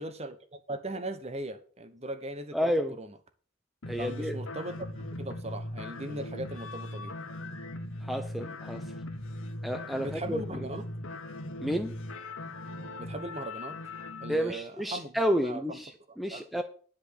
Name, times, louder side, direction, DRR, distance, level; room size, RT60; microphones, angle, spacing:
voice 1, 0.0-3.2 4.0-7.1 10.0-10.8 13.0-13.8 14.2-15.8 16.1-16.6, right 2 dB, 30° right, 1.1 m, -39 dB
voice 2, 2.5-2.9 3.9-4.4 8.1-8.8 9.6-10.4 11.6-11.9 14.3-15.9 16.2-16.6, equal, ahead, 0.6 m, -30 dB
sound 1, 3.8-14.4, left 1 dB, 75° left, 1.5 m, -39 dB
10.5 x 5.2 x 8.3 m
head